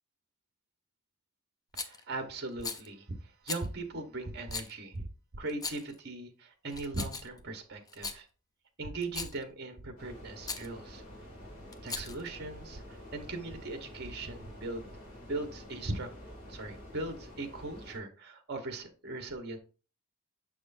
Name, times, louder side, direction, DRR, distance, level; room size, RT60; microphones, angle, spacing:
Rattle, 1.7-2.0 2.6-2.9 3.5-3.7 4.5-4.7 5.5-5.9 6.7-7.4 7.9-8.2 9.0-9.4 10.4-10.7 11.7-12.3, left 4 dB, 15° left, 0.4 m, -38 dB
voice 1, 1.7-5.1 5.3-8.3 8.8-11.0 11.8-14.8 15.2-16.1 16.5-19.6, right 2 dB, 50° right, 7 dB, 1.1 m, -39 dB
sound 1, 10.0-18.0, equal, 40° left, 2.6 m, -48 dB
6.6 x 6.2 x 2.6 m, 0.35 s
head